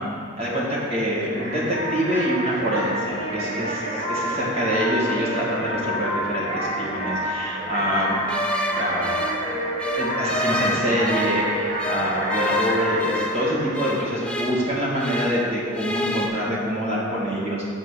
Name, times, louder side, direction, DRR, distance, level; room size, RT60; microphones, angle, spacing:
voice 1, 0.0-8.2 8.7-9.1 9.9-17.7, equal, 30° right, -7 dB, 2.1 m, -25 dB
sound 1, 1.3-14.8, equal, 80° right, 2.2 m, -28 dB
sound 2, 8.3-11.5 11.8-15.5 15.7-16.3, left 1 dB, 5° left, 0.4 m, -29 dB
7.2 x 5.1 x 6.5 m, 2.3 s
head